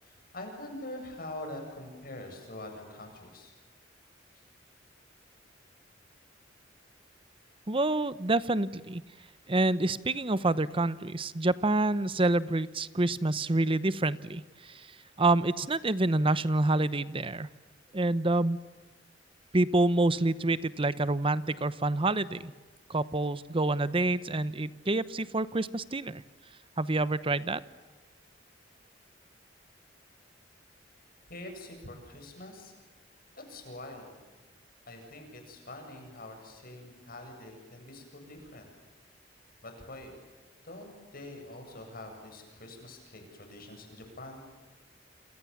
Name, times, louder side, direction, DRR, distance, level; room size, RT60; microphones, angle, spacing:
voice 1, 0.0-3.5 31.3-32.7 33.3-34.1 34.9-38.7 39.6-40.1 40.6-44.4, left 1 dB, 50° left, 4 dB, 7.9 m, -44 dB
voice 2, 7.7-9.0 9.5-14.9 15.2-17.5 17.9-18.6 19.5-22.5 22.9-26.2 26.8-27.6, right 2 dB, 30° right, 16 dB, 0.9 m, -27 dB
29.0 x 27.5 x 7.3 m, 1.3 s
head